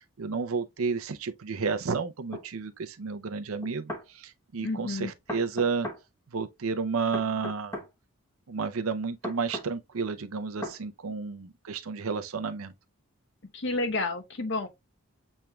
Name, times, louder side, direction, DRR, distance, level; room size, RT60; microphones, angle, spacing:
voice 1, 0.0-5.9 6.3-7.8 8.5-12.7, right 5 dB, 75° right, 0.6 m, -31 dB
sound 1, 2.3-2.5 3.6-4.1 5.3-6.0 7.1-7.9 9.2-9.7 10.6-10.8, equal, 10° left, 0.9 m, -36 dB
voice 2, 4.6-5.1 13.5-14.7, left 2 dB, 55° left, 0.9 m, -30 dB
7.2 x 3.2 x 2.2 m
head